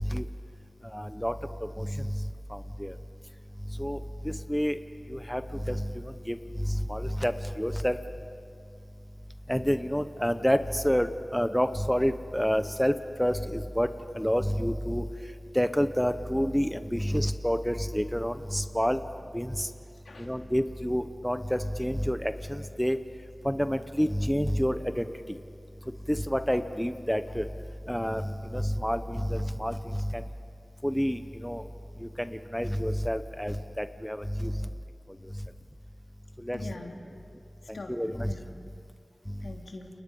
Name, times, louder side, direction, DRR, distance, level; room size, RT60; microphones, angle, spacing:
voice 1, 0.9-1.3 1.8-2.1 2.5-2.9 3.8-4.0 4.2-4.8 5.1-5.9 6.3-6.4 6.6-7.3 7.6-8.0 9.5-12.9 13.2-13.9 14.1-15.0 15.5-19.0 19.3-19.7 20.2-23.0 23.4-25.1 26.1-27.5 27.9-28.2 28.5-30.2 30.8-31.6 32.0-34.5 36.4-36.6 37.9-38.3, equal, 5° left, 10 dB, 0.9 m, -28 dB
voice 2, 36.5-37.2 37.7-38.4 39.4-39.9, left 2 dB, 85° left, 1 dB, 3.0 m, -42 dB
30.0 x 29.0 x 5.5 m, 2.3 s
wide cardioid pair, 80°, 0 cm